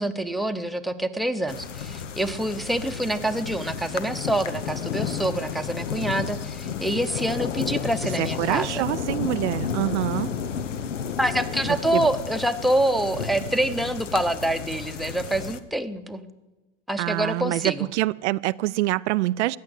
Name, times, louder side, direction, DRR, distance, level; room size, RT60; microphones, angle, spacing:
voice 1, 0.0-8.9 11.2-16.2 16.9-17.9, right 1 dB, ahead, 0.8 m, -26 dB
sound 1, 1.5-15.6, left 7 dB, 90° left, 1.0 m, -32 dB
voice 2, 8.2-10.3 11.9-12.0 17.0-19.6, right 18 dB, 75° right, 0.5 m, -25 dB
15.0 x 9.7 x 7.9 m
hypercardioid pair, 100°, 36 cm